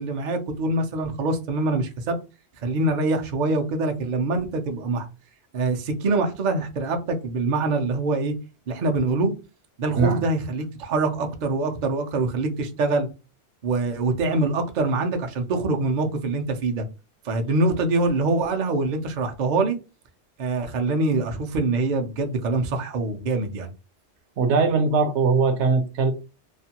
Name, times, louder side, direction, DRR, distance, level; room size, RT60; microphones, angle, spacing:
voice 1, 0.0-2.2 2.6-5.1 5.5-8.3 8.7-9.3 9.8-13.1 13.6-16.9 17.2-19.8 20.4-23.7, right 2 dB, 55° right, 0.5 m, -24 dB
voice 2, 24.4-26.1, right 4 dB, 75° right, 0.9 m, -20 dB
2.4 x 2.2 x 2.8 m
omnidirectional pair, 1.2 m